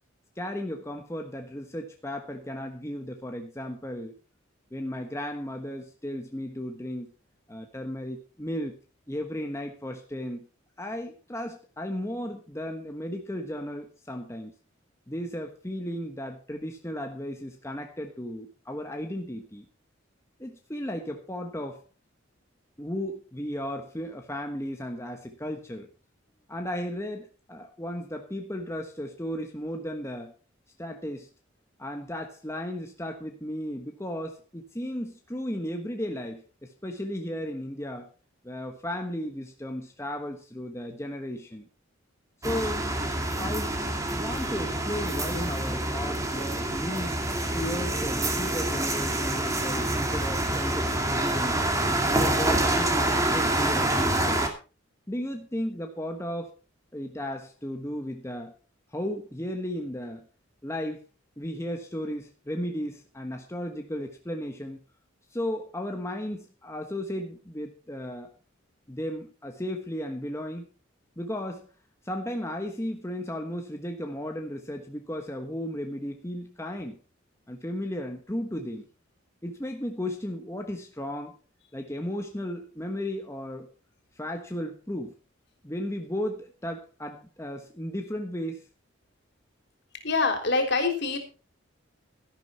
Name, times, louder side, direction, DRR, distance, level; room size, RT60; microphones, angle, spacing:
voice 1, 0.4-4.1 4.7-7.1 7.5-8.8 9.1-10.5 10.8-14.5 15.1-19.6 20.4-21.8 22.8-25.9 26.5-30.3 30.8-31.3 31.8-38.1 38.4-41.7 42.4-42.9 43.4-43.7 44.1-47.2 47.5-51.6 52.1-54.4 55.1-56.5 56.9-58.5 58.9-60.3 60.6-61.0 61.4-64.8 65.3-68.3 68.9-70.7 71.2-71.7 72.0-77.0 77.5-78.9 79.4-81.3 81.7-83.7 84.1-85.1 85.6-88.7, left 1 dB, 15° left, 3 dB, 1.2 m, -35 dB
sound 1, 42.4-54.5, right 1 dB, 15° right, 2.2 m, -27 dB
voice 2, 90.0-91.2, left 3 dB, 60° left, 6 dB, 3.5 m, -25 dB
13.5 x 11.0 x 4.3 m, 0.35 s
head